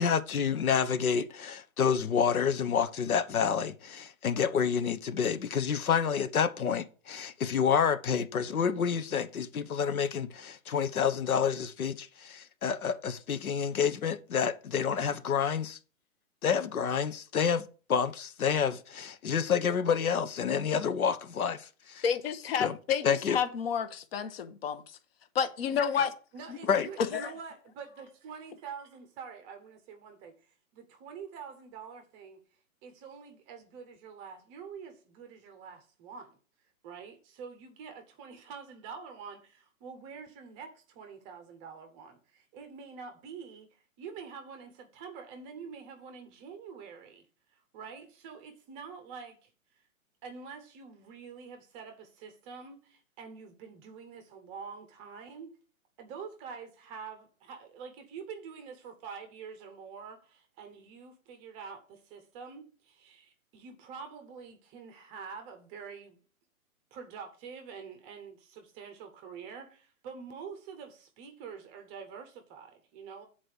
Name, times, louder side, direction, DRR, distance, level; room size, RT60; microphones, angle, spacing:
voice 1, 0.0-15.8 16.4-22.0 22.6-22.7 23.0-23.4 26.7-26.9, left 7 dB, 80° left, 1.0 m, -29 dB
voice 2, 22.0-25.0 25.3-26.1 26.5-26.6 27.0-27.3, left 7 dB, 45° left, 1.0 m, -30 dB
voice 3, 26.3-32.4 32.8-36.4 36.8-49.5 50.2-55.6 56.0-66.2 66.9-73.3, right 6 dB, 15° right, 0.7 m, -46 dB
7.6 x 4.2 x 6.4 m
hypercardioid pair, 140°, 42 cm